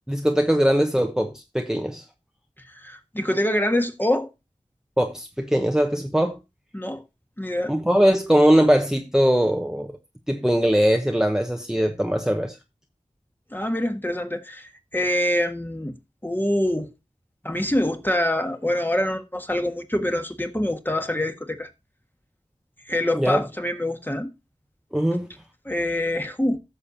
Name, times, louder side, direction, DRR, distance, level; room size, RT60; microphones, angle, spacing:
voice 1, 0.1-2.0 5.0-6.4 7.7-10.0 10.3-12.6 23.1-23.4 24.9-25.3, equal, 5° right, 0.9 m, -21 dB
voice 2, 2.6-4.3 6.7-7.0 7.4-7.7 13.5-16.0 16.2-16.9 17.4-21.7 22.8-24.3 25.6-26.6, left 1 dB, 15° left, 1.5 m, -25 dB
16.0 x 6.7 x 2.8 m
wide cardioid pair, 50°, 13 cm